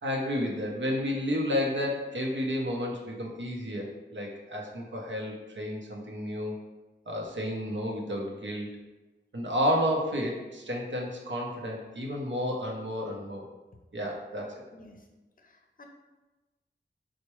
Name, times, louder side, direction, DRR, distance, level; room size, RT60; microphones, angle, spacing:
voice 1, 0.0-3.9 4.1-6.5 7.1-8.8 9.3-13.4 13.9-14.6, equal, 75° right, -1 dB, 0.7 m, -31 dB
voice 2, 14.7-15.1 15.4-15.8, left 1 dB, 45° left, 2 dB, 0.5 m, -53 dB
4.4 x 2.1 x 3.0 m, 1.1 s
wide cardioid pair, 60°, 19 cm